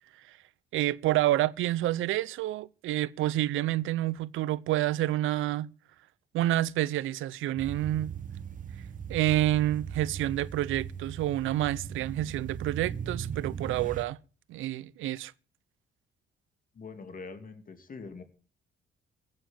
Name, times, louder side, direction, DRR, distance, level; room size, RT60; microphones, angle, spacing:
voice 1, 0.7-5.7 6.3-8.1 9.1-14.2 14.5-15.3, right 14 dB, 85° right, 0.7 m, -28 dB
sound 1, 7.6-14.0, right 7 dB, 40° right, 0.9 m, -39 dB
voice 2, 16.7-18.2, left 4 dB, 45° left, 2.7 m, -43 dB
16.0 x 7.8 x 7.4 m
cardioid pair, 90°, 20 cm